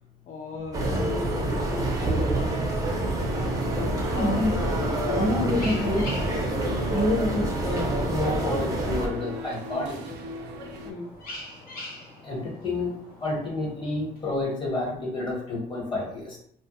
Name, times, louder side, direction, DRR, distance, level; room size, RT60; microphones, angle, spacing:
voice 1, 0.3-2.8 3.7-4.7 5.1-5.8 6.3-6.4 10.8-11.1, left 4 dB, 45° left, -1 dB, 0.4 m, -37 dB
sound 1, 0.7-9.1, right 1 dB, 20° right, 0.5 m, -27 dB
sound 2, 3.2-10.9, equal, 75° right, 0.4 m, -37 dB
sound 3, 3.8-14.7, left 1 dB, 60° left, 0.8 m, -45 dB
voice 2, 4.1-4.5 4.8-6.1 6.9-9.9 12.2-16.4, left 2 dB, 30° left, -4 dB, 1.1 m, -29 dB
2.1 x 2.0 x 3.0 m, 0.68 s
cardioid pair, 110°, 17 cm